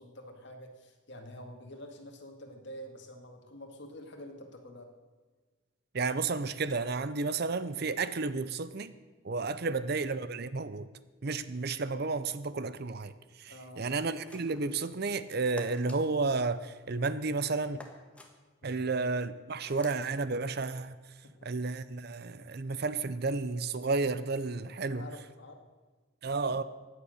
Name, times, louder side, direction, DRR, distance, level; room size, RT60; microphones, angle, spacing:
voice 1, 0.0-4.9 9.6-9.8 13.5-13.9 18.6-19.0 21.2-21.5 24.9-25.6, equal, 55° left, 2.2 m, -48 dB
voice 2, 5.9-8.9 9.2-10.9 11.2-13.1 13.4-17.8 18.6-20.9 21.4-25.0 26.2-26.6, right 3 dB, 50° right, 0.6 m, -32 dB
sound 1, 14.1-14.7 15.6-16.0 17.8-18.3 19.6-20.0, left 1 dB, 5° left, 1.4 m, -49 dB
16.0 x 9.9 x 6.6 m
head